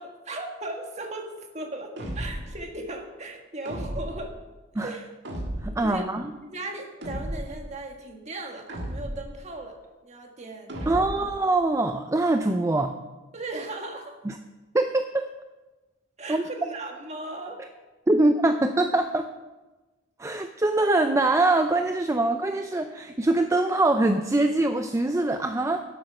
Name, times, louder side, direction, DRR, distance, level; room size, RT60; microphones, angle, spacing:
voice 1, 0.0-4.4 4.8-5.1 5.8-6.1 6.4-11.3 13.3-14.2 16.2-17.6, right 2 dB, 35° right, 3 dB, 1.6 m, -37 dB
sound 1, 2.0-2.6 3.7-4.3 5.2-5.9 7.0-7.6 8.7-9.4 10.7-11.3, right 1 dB, 60° right, 1.8 m, -34 dB
voice 2, 5.6-6.3 10.9-12.9 14.3-14.4 14.7-15.2 16.3-16.4 18.1-19.3 20.2-25.9, right 2 dB, 15° right, 7 dB, 0.4 m, -23 dB
12.0 x 7.7 x 5.8 m, 1.1 s
head